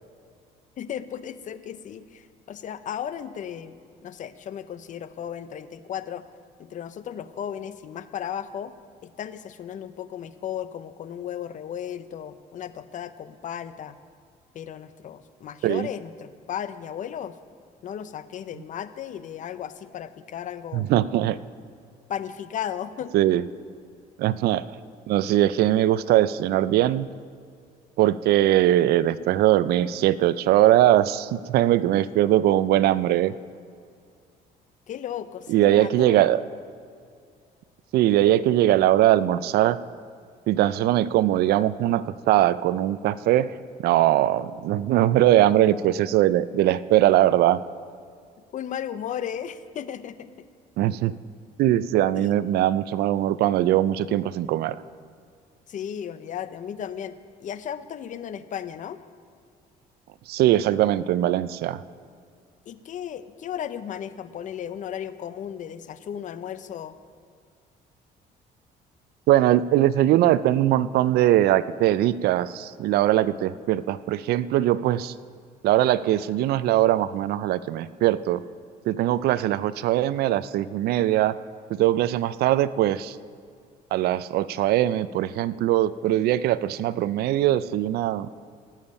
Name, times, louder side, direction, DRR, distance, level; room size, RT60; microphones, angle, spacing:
voice 1, 0.8-6.3 6.6-8.7 9.0-14.0 14.5-17.4 17.8-20.9 22.1-23.1 34.9-36.3 48.5-50.3 52.2-52.3 55.7-59.0 62.7-67.0, left 9 dB, 50° left, 13 dB, 0.6 m, -35 dB
voice 2, 20.7-21.4 23.1-23.4 24.2-24.6 25.1-27.1 28.0-33.3 35.5-36.4 37.9-39.8 40.5-43.6 43.8-47.6 50.8-51.1 51.6-54.8 60.3-61.8 69.3-75.1 75.6-78.4 78.8-81.3 81.7-83.2 83.9-88.3, right 13 dB, 70° right, 16 dB, 0.4 m, -21 dB
18.5 x 7.3 x 5.3 m, 2.2 s
cardioid pair, 110°, 17 cm